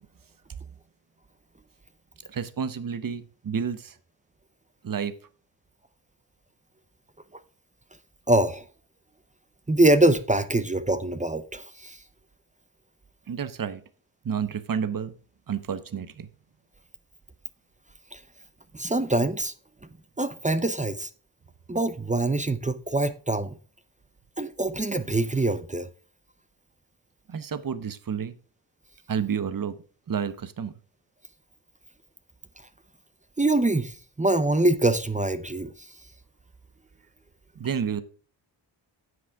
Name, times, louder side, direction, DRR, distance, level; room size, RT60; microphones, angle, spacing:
voice 1, 2.3-4.0 4.8-5.1 13.3-13.8 14.2-15.1 15.5-16.3 27.3-28.3 29.1-29.8 30.1-30.7 37.6-38.0, right 7 dB, 45° right, 1.0 m, -30 dB
voice 2, 8.3-8.6 9.7-12.0 18.1-18.2 18.7-19.5 20.2-21.1 21.7-23.5 24.4-25.9 33.4-35.7, right 2 dB, 15° right, 0.6 m, -24 dB
9.5 x 8.0 x 3.5 m
wide cardioid pair, 115°, 45 cm